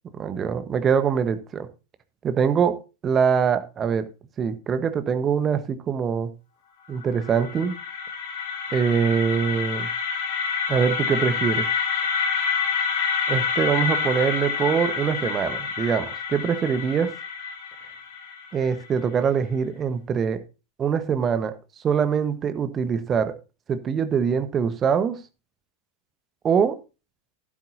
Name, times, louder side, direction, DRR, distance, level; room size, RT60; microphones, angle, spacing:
voice 1, 0.1-1.7 2.2-2.8 3.0-4.1 4.4-6.3 6.9-7.8 8.7-9.9 10.7-11.7 13.3-17.1 18.5-20.4 20.8-21.5 21.8-23.3 23.7-25.2 26.4-26.7, right 7 dB, 25° right, 1.2 m, -23 dB
sound 1, 7.0-19.0, left 6 dB, 50° left, 2.6 m, -28 dB
12.0 x 11.0 x 2.7 m
figure-of-eight pair, 90°, 0 cm